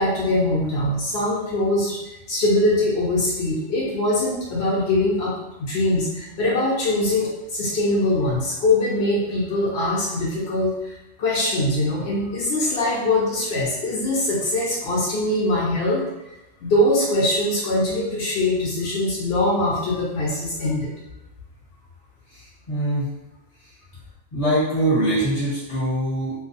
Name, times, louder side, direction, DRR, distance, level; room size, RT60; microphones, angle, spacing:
voice 1, 0.0-2.0 2.3-5.3 5.6-16.0 16.6-20.9, left 1 dB, 60° left, -6 dB, 0.7 m, -22 dB
voice 2, 22.3-23.1 24.3-26.3, right 1 dB, 30° left, -11 dB, 0.9 m, -23 dB
2.3 x 2.3 x 2.5 m, 0.94 s
omnidirectional pair, 1.4 m